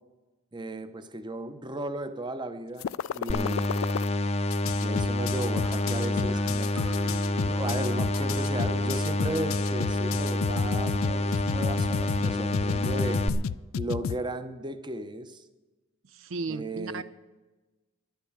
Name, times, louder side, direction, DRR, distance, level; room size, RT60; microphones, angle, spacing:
voice 1, 0.5-3.8 4.8-13.2 13.7-15.4 16.5-17.0, right 1 dB, 20° right, 11 dB, 0.7 m, -36 dB
sound 1, 2.8-4.1 4.5-14.2, left 7 dB, 75° left, 0.3 m, -32 dB
sound 2, 3.3-13.3, left 1 dB, 30° left, 0.6 m, -28 dB
sound 3, 5.6-11.1, right 2 dB, 90° right, 3.5 m, -47 dB
voice 2, 16.1-17.0, right 3 dB, 70° right, 14 dB, 0.5 m, -34 dB
11.0 x 10.5 x 7.3 m, 1.2 s
head